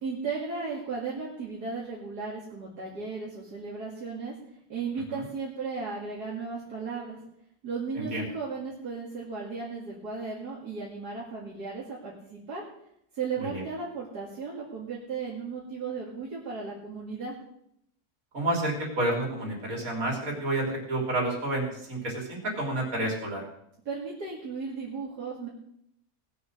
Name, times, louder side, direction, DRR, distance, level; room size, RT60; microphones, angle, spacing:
voice 1, 0.0-4.4 4.7-7.2 7.6-12.6 13.1-17.4 23.9-25.5, right 4 dB, 75° right, -4 dB, 2.7 m, -35 dB
voice 2, 18.3-23.4, right 1 dB, 55° right, 0 dB, 3.8 m, -30 dB
18.5 x 6.8 x 6.4 m, 0.75 s
omnidirectional pair, 1.7 m